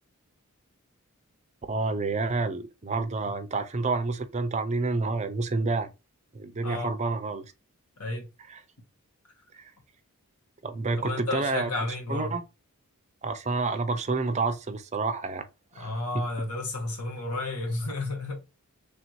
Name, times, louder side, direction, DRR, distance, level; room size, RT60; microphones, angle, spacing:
voice 1, 1.7-5.9 6.3-7.5 8.5-8.6 9.5-9.6 10.6-11.7 12.1-12.4 13.2-15.4 15.7-16.3, right 3 dB, 30° right, 0.5 m, -29 dB
voice 2, 11.0-12.3 15.8-18.4, left 2 dB, 90° left, 1.4 m, -32 dB
3.4 x 2.7 x 4.4 m
head